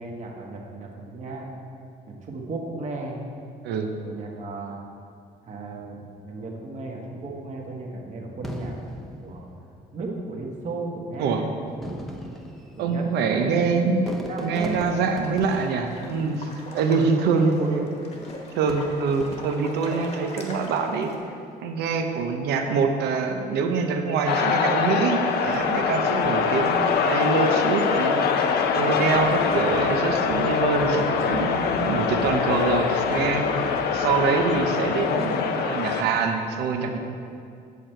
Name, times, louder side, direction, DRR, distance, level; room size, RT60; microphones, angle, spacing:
voice 1, 0.0-1.5 2.1-3.2 4.0-4.8 5.5-8.7 9.2-9.5 9.9-12.0 12.8-13.5 14.1-15.0 17.2-17.8, right 3 dB, 45° right, 0 dB, 1.4 m, -34 dB
Fireworks, 8.4-10.1 10.9-11.0 11.7-17.0 18.0-19.8 20.4-20.8, equal, ahead, 0.7 m, -40 dB
voice 2, 12.8-14.0 14.4-16.5 16.7-17.5 18.5-21.1 21.6-28.5 28.7-33.5 33.9-37.0, right 5 dB, 80° right, 5 dB, 0.8 m, -25 dB
sound 1, 14.8-21.2, left 2 dB, 40° left, 1.3 m, -42 dB
sound 2, 24.3-36.0, left 6 dB, 70° left, 0.6 m, -23 dB
8.3 x 6.7 x 4.5 m, 2.4 s
cardioid pair, 110°, 17 cm